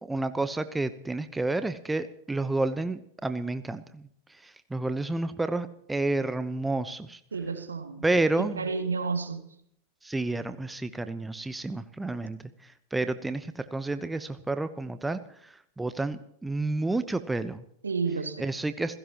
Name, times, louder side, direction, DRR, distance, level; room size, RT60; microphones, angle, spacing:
voice 1, 0.0-7.2 8.0-8.7 10.0-17.6 18.4-19.0, right 2 dB, 5° right, 11 dB, 1.0 m, -30 dB
voice 2, 7.3-8.0 8.6-9.4 17.8-18.4, right 4 dB, 75° right, 7 dB, 2.5 m, -30 dB
28.0 x 16.5 x 3.0 m, 0.68 s
figure-of-eight pair, 90°, 0 cm